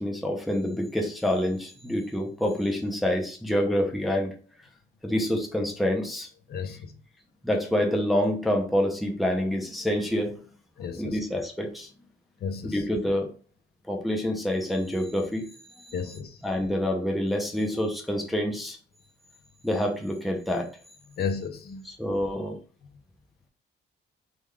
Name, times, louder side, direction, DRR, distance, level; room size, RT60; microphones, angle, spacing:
voice 1, 0.0-4.3 5.0-6.3 7.4-10.4 11.0-11.9 12.6-13.3 13.9-15.5 15.8-16.0 16.4-18.8 19.6-20.7 21.8-22.6, left 1 dB, ahead, 0.5 m, -27 dB
voice 2, 10.8-11.2 12.4-12.8 15.9-16.4 21.2-21.8, left 6 dB, 50° left, 0.4 m, -32 dB
3.6 x 2.3 x 3.1 m
wide cardioid pair, 160°, 21 cm